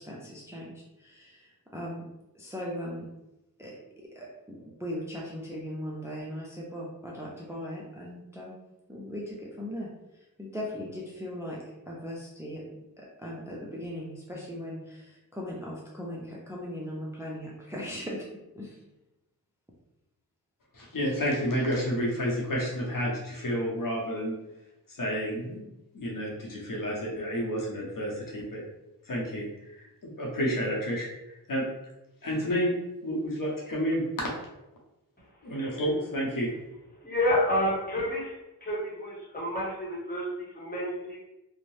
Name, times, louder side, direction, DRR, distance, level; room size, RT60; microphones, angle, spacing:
voice 1, 0.0-2.1 2.3-3.1 3.6-8.6 8.9-9.9 10.4-18.3 18.5-18.8, equal, 10° right, -4 dB, 0.4 m, -39 dB
voice 2, 20.7-24.4 24.9-25.7 25.9-28.6 29.1-31.6 32.2-32.8 33.0-34.3 35.4-36.5, equal, 60° left, -3 dB, 0.8 m, -30 dB
voice 3, 37.0-38.3 38.6-41.2, left 1 dB, 25° left, -5 dB, 1.0 m, -29 dB
2.6 x 2.0 x 3.1 m, 0.95 s
wide cardioid pair, 90°, 37 cm